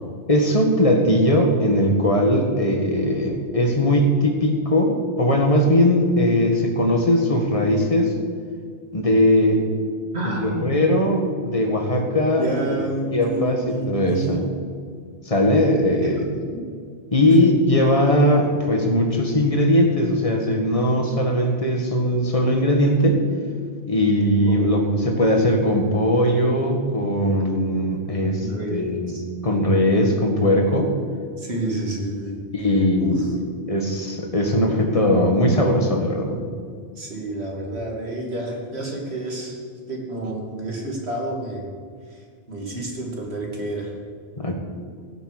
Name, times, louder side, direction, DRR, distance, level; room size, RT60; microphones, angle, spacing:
voice 1, 0.3-8.1 8.9-9.6 10.2-12.5 13.1-14.5 15.3-16.2 17.1-23.2 23.8-29.2 29.4-30.9 32.5-33.3 33.7-36.4 44.4-44.5, left 1 dB, 30° left, 3 dB, 1.8 m, -19 dB
voice 2, 10.1-10.9 12.4-14.3 16.2-16.6 17.3-17.4 24.4-24.6 24.9-25.0 28.4-29.2 31.4-32.4 33.0-33.3 37.0-39.6 39.9-41.6 42.1-43.9, right 2 dB, 75° right, -1 dB, 2.8 m, -29 dB
16.5 x 8.1 x 6.7 m, 2.1 s
omnidirectional pair, 1.1 m